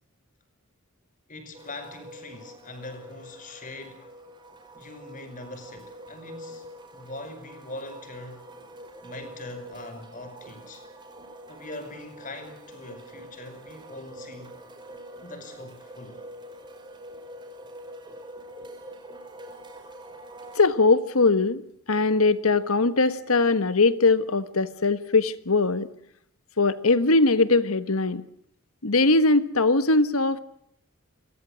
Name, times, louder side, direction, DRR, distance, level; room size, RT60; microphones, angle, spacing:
voice 1, 1.3-4.3 4.7-8.5 9.0-10.8 11.5-14.5 15.2-16.3, left 2 dB, 40° left, 5.5 m, -42 dB
sound 1, 1.5-20.6, right 1 dB, 20° right, 5.3 m, -45 dB
voice 2, 20.5-21.6 21.9-25.9 26.6-28.2 28.8-30.4, left 3 dB, 85° left, 1.5 m, -21 dB
29.0 x 23.0 x 6.4 m
head